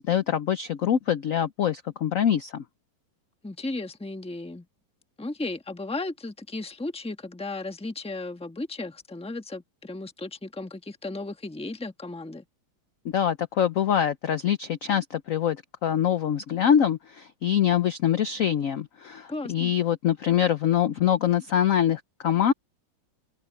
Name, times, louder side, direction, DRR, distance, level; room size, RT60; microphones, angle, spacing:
voice 1, 0.0-2.6 13.1-22.5, left 9 dB, 65° left, 0.8 m, -24 dB
voice 2, 3.4-4.7 5.2-12.4 19.3-19.7, left 2 dB, 5° left, 1.0 m, -35 dB
omnidirectional pair, 2.1 m